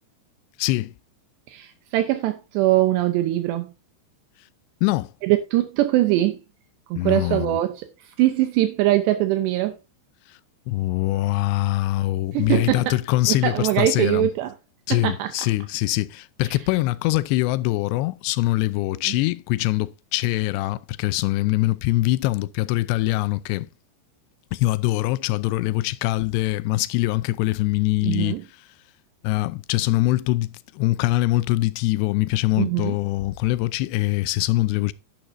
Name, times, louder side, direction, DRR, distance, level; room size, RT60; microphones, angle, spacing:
voice 1, 0.6-0.9 4.8-5.1 7.0-7.6 10.7-14.3 14.9-23.7 24.5-28.4 29.2-34.9, left 18 dB, 80° left, 2.7 m, -23 dB
voice 2, 1.5-3.7 5.2-6.4 6.9-9.8 12.3-12.9 13.3-14.5 14.9-15.3 19.1-19.2 28.0-28.4 32.6-32.9, right 14 dB, 80° right, 3.0 m, -22 dB
11.5 x 10.5 x 2.7 m
omnidirectional pair, 5.0 m